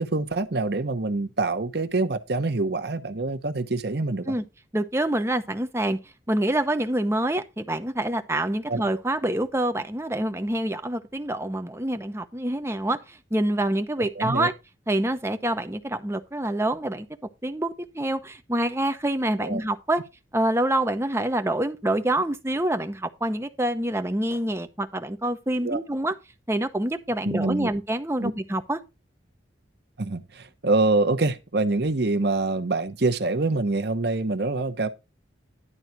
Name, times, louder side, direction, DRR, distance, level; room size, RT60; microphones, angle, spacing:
voice 1, 0.0-4.3 8.7-8.8 14.2-14.5 19.4-19.6 25.6-25.8 27.2-27.7 28.2-28.3 30.0-34.9, right 2 dB, 60° right, 1.0 m, -25 dB
voice 2, 4.7-6.0 6.3-14.5 14.9-17.1 17.4-20.0 20.3-26.1 26.5-28.8, right 1 dB, 15° right, 0.8 m, -26 dB
11.0 x 4.0 x 5.8 m
head